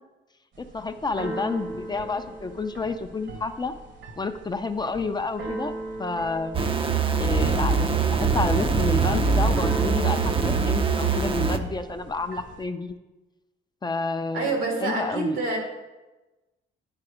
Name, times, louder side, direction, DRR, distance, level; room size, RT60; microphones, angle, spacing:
Keyboard (musical), 0.5-12.6, right 2 dB, 65° right, 1.3 m, -39 dB
voice 1, 0.6-3.7 4.2-5.7 6.0-6.6 7.2-12.9 13.8-14.5 14.8-15.4, left 3 dB, 20° left, 8 dB, 0.5 m, -29 dB
sound 1, 6.5-11.6, right 5 dB, 25° right, 0.5 m, -23 dB
voice 2, 14.3-15.6, right 3 dB, 90° right, 1 dB, 2.0 m, -26 dB
9.8 x 4.2 x 4.9 m, 1.1 s
cardioid pair, 90°, 20 cm